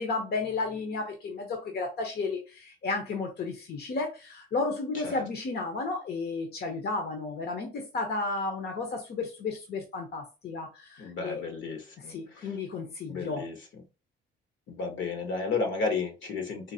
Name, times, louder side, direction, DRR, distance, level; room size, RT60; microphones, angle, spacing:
voice 1, 0.0-11.4 12.1-13.4, left 3 dB, 55° left, 0.9 m, -33 dB
voice 2, 11.0-12.6 13.1-13.5 14.7-16.7, left 4 dB, 70° left, 1.1 m, -33 dB
3.9 x 2.6 x 2.7 m
cardioid pair, 90°, 20 cm